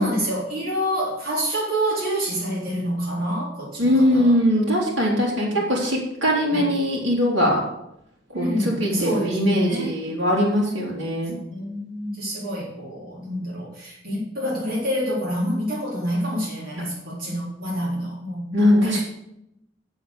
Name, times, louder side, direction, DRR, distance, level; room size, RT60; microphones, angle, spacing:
voice 1, 0.0-4.3 6.5-6.7 8.3-9.9 11.5-19.0, equal, 50° right, -7 dB, 3.9 m, -27 dB
voice 2, 3.8-7.6 8.3-11.4 18.5-19.0, equal, 80° right, -4 dB, 3.4 m, -21 dB
7.9 x 7.2 x 8.5 m, 0.83 s
head